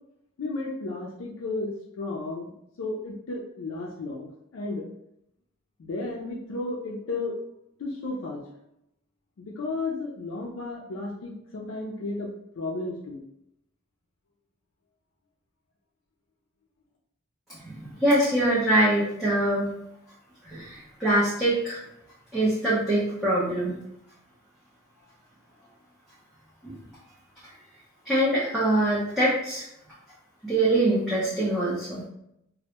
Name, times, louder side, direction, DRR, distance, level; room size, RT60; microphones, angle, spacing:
voice 1, 0.4-2.5 2.8-4.9 5.8-7.4 7.8-8.5 9.4-12.3 12.6-13.2, left 2 dB, 70° left, -3 dB, 0.4 m, -33 dB
voice 2, 17.5-19.7 20.4-21.8 22.3-23.8 26.6-26.8 28.1-29.7 30.4-32.1, right 1 dB, ahead, -10 dB, 0.5 m, -24 dB
2.1 x 2.0 x 2.8 m, 0.78 s
head